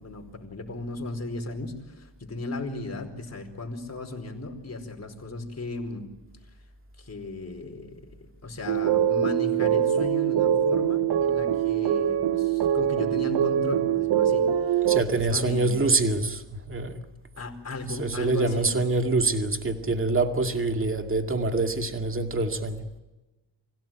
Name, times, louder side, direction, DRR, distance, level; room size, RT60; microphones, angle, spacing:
voice 1, 0.0-6.1 7.0-15.8 17.4-18.7, left 2 dB, 35° left, 4.8 m, -36 dB
sound 1, 8.7-15.0, right 9 dB, 60° right, 0.9 m, -23 dB
voice 2, 14.9-17.0 17.9-22.9, right 3 dB, 25° right, 2.3 m, -25 dB
26.0 x 16.5 x 9.1 m
cardioid pair, 85°, 47 cm